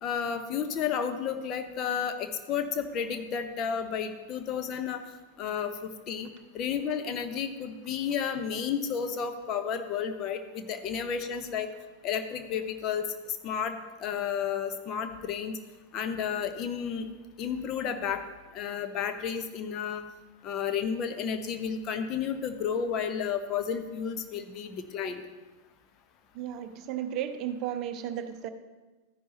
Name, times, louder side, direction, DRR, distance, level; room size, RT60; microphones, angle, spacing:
voice 1, 0.0-5.0 5.4-5.7 6.1-6.3 6.5-11.7 12.0-15.6 15.9-17.1 17.4-18.2 18.5-20.0 20.4-25.2, left 7 dB, 35° left, 7 dB, 0.9 m, -32 dB
voice 2, 26.3-28.5, right 10 dB, 40° right, 9 dB, 0.6 m, -34 dB
13.5 x 10.0 x 3.0 m, 1.2 s
figure-of-eight pair, 90°, 0 cm